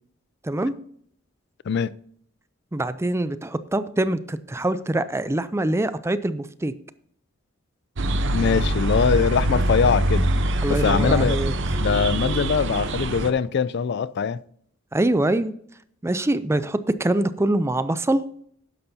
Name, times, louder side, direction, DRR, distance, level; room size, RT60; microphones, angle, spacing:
voice 1, 0.4-0.8 2.7-6.7 10.6-11.8 14.9-15.5 16.0-18.2, right 1 dB, 15° right, 0.4 m, -24 dB
sound 1, 8.0-13.3, right 1 dB, 65° right, 0.8 m, -23 dB
voice 2, 8.3-10.3 10.7-11.4 11.8-14.4, left 6 dB, 55° left, 0.4 m, -22 dB
12.0 x 10.0 x 2.7 m
head